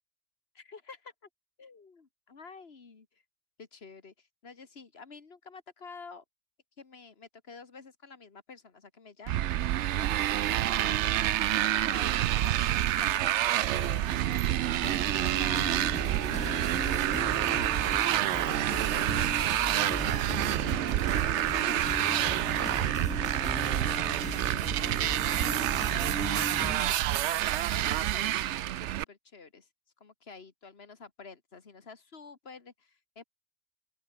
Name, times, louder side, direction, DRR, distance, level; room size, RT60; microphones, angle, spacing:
voice 1, 0.5-1.3 1.6-3.2 3.6-6.2 6.8-15.8 16.3-27.2 27.7-29.7 30.0-33.2, left 4 dB, 60° left, 2.0 m, -50 dB
Motorcycle, 9.3-29.0, right 13 dB, 80° right, 0.9 m, -28 dB
sound 1, 13.7-28.9, right 1 dB, 35° right, 4.6 m, -56 dB
sound 2, 14.8-26.8, left 1 dB, 5° left, 1.0 m, -38 dB
open air
omnidirectional pair, 1.2 m